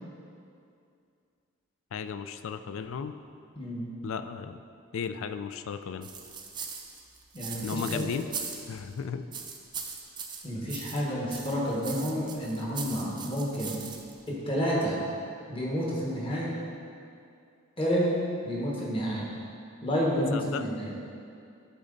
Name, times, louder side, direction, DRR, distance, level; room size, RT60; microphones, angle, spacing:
voice 1, 1.9-3.2 4.0-4.6 4.9-6.1 7.6-8.3 8.7-9.2 20.3-20.6, left 6 dB, 65° left, 10 dB, 0.3 m, -35 dB
voice 2, 3.6-3.9 7.3-8.1 10.4-13.8 14.3-15.0 15.5-16.5 17.8-18.2 18.4-19.2 19.8-20.9, equal, 25° left, -5 dB, 1.2 m, -30 dB
sound 1, 6.0-8.9 9.3-11.0 11.3-14.3, right 6 dB, 20° right, 0.4 m, -40 dB
11.5 x 4.0 x 3.9 m, 2.5 s
head